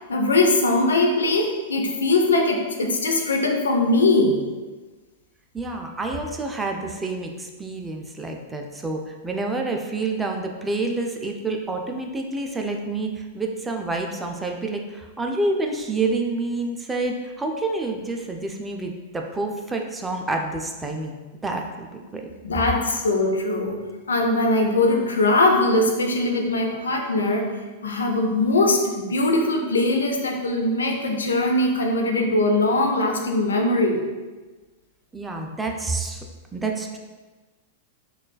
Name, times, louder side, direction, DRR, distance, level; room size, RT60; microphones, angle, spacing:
voice 1, 0.1-4.4 22.4-23.8 24.1-27.5 27.8-34.0, left 2 dB, 80° left, 1 dB, 0.6 m, -21 dB
voice 2, 5.5-22.2 31.6-31.7 35.1-36.2 36.5-37.0, right 3 dB, 10° right, 2 dB, 0.4 m, -28 dB
5.9 x 2.4 x 2.3 m, 1.3 s
figure-of-eight pair, 100°, 0 cm